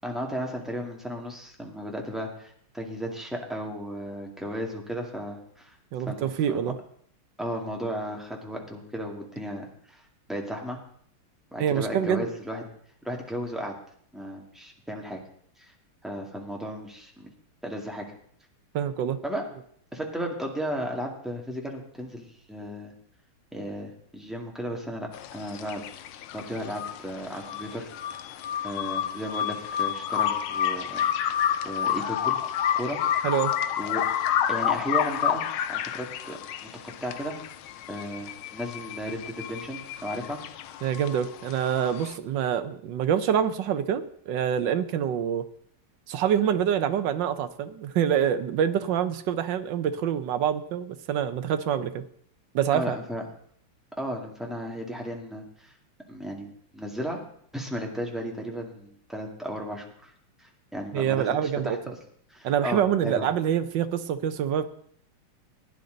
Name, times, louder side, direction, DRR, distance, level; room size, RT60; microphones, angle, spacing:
voice 1, 0.0-5.7 6.1-6.7 7.4-10.0 10.3-10.8 11.5-12.6 13.0-13.7 14.1-15.2 15.6-15.7 16.0-17.3 17.6-18.1 19.2-19.4 19.9-22.9 23.5-25.8 26.3-27.9 28.6-31.0 31.6-32.4 32.8-33.0 33.8-34.0 34.5-36.4 37.0-37.4 37.9-40.4 52.7-53.2 54.0-55.7 56.1-57.2 57.5-60.1 60.4-61.8 62.3-63.3, equal, ahead, 0 dB, 1.8 m, -34 dB
voice 2, 5.9-6.7 11.6-12.3 18.7-19.2 33.2-33.5 40.8-45.4 46.1-52.0 52.5-53.0 60.9-61.8 62.4-64.6, right 9 dB, 65° right, 11 dB, 1.3 m, -26 dB
sound 1, 25.1-42.2, left 10 dB, 80° left, 1.5 m, -30 dB
16.0 x 10.0 x 3.9 m, 0.63 s
omnidirectional pair, 2.3 m